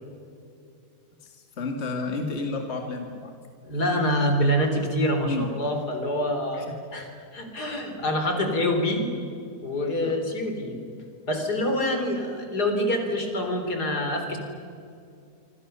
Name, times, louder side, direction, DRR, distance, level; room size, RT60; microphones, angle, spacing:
voice 1, 1.2-3.3 5.2-5.5 6.5-6.8 10.0-10.2, left 3 dB, 40° left, 3 dB, 2.3 m, -31 dB
voice 2, 3.6-7.1 7.3-9.1 9.6-10.7 11.3-14.4, equal, 70° left, 4 dB, 4.2 m, -26 dB
26.0 x 26.0 x 6.9 m, 2.5 s
omnidirectional pair, 1.8 m